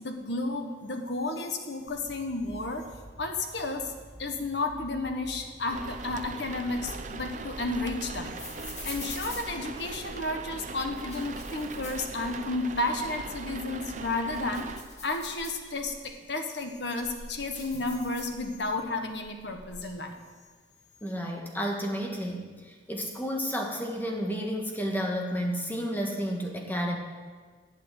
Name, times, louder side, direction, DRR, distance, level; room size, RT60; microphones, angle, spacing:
voice 1, 0.0-2.9 3.2-3.9 4.2-8.3 8.7-14.7 15.0-15.9 16.3-20.1, left 2 dB, 65° left, 4 dB, 1.3 m, -32 dB
Deep Dark Drone - A, 1.9-9.3, equal, 70° right, 2.1 m, -50 dB
sound 1, 5.7-14.8, right 3 dB, 40° right, 0.7 m, -40 dB
sound 2, 6.8-10.3 10.8-12.7 13.0-13.1 13.6-16.0 16.6-18.8 19.0-19.8, left 2 dB, 35° left, 2.6 m, -45 dB
voice 2, 21.0-27.0, equal, 10° left, 0 dB, 1.6 m, -31 dB
12.0 x 8.7 x 7.9 m, 1.5 s
head